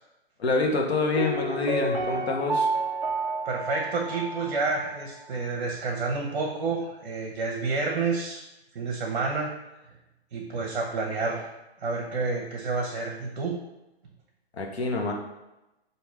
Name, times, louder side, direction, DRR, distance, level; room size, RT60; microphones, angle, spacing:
voice 1, 0.4-2.7 14.5-15.1, left 3 dB, 85° left, 1 dB, 1.0 m, -26 dB
Piano, 1.2-4.9 5.2-5.3, right 2 dB, 35° right, 0.4 m, -30 dB
voice 2, 3.4-8.4 8.7-9.5 10.3-11.4 11.8-13.6, right 3 dB, 60° right, 0 dB, 0.8 m, -29 dB
3.6 x 2.7 x 4.5 m, 0.96 s
hypercardioid pair, 155°, 31 cm